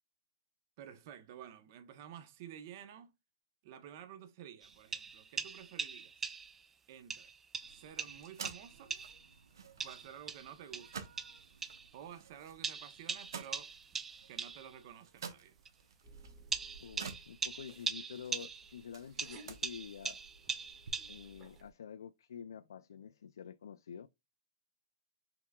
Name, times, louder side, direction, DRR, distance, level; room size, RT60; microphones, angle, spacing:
voice 1, 0.8-3.1 3.6-6.2 6.9-7.3 7.7-8.9 9.8-11.1 11.9-13.7 14.3-15.5, right 9 dB, 45° right, 0.8 m, -51 dB
sound 1, 4.6-6.7 7.1-9.3 9.8-11.9 12.6-14.7 15.7-15.8 16.5-18.8 19.2-21.4, right 5 dB, 10° right, 0.3 m, -41 dB
sound 2, 7.6-20.9, right 6 dB, 85° right, 1.0 m, -52 dB
sound 3, 16.0-21.7, right 3 dB, 25° right, 1.6 m, -59 dB
voice 2, 16.8-20.2 21.1-24.1, left 7 dB, 85° left, 0.3 m, -48 dB
5.8 x 3.4 x 2.2 m
hypercardioid pair, 155°, 2 cm